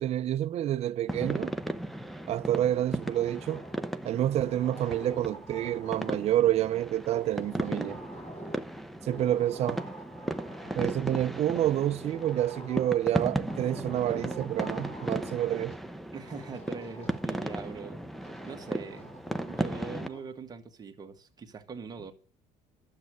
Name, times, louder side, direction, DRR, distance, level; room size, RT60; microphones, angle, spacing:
voice 1, 0.0-1.5 2.3-3.6 4.0-8.0 9.0-9.8 10.7-15.8, right 12 dB, 45° right, 0.6 m, -28 dB
sound 1, 1.1-20.1, right 1 dB, ahead, 0.7 m, -36 dB
sound 2, 2.5-4.0 4.4-6.5 7.1-8.8 9.1-11.1 11.5-13.1 13.5-15.5 16.3-17.8 18.2-20.3, right 1 dB, 40° left, 5.3 m, -47 dB
voice 2, 16.1-18.1 18.4-19.1 19.5-22.1, right 5 dB, 25° right, 1.7 m, -42 dB
12.0 x 7.5 x 8.1 m
cardioid pair, 150°, 15 cm